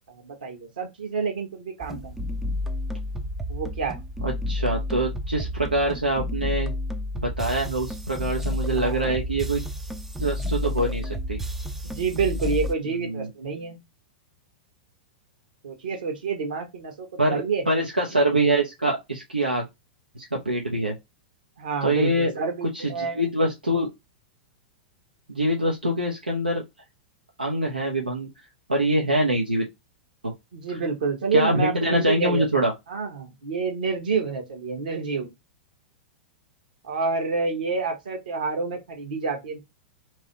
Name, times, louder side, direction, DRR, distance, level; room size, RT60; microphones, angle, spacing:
voice 1, 0.1-2.2 3.5-4.0 8.7-9.2 11.8-13.8 15.6-17.6 21.6-23.2 30.5-35.3 36.8-39.6, right 4 dB, 60° right, 1.4 m, -28 dB
sound 1, 1.8-12.7, left 1 dB, 5° right, 0.4 m, -30 dB
voice 2, 4.2-6.7 7.2-9.6 10.2-11.4 13.0-13.3 17.2-19.6 20.2-21.0 21.8-22.3 22.7-23.9 25.3-26.6 27.4-28.3 28.7-29.7 30.2-30.3 31.3-32.7, right 1 dB, 85° right, 0.7 m, -24 dB
3.1 x 2.8 x 4.1 m
figure-of-eight pair, 100°, 5 cm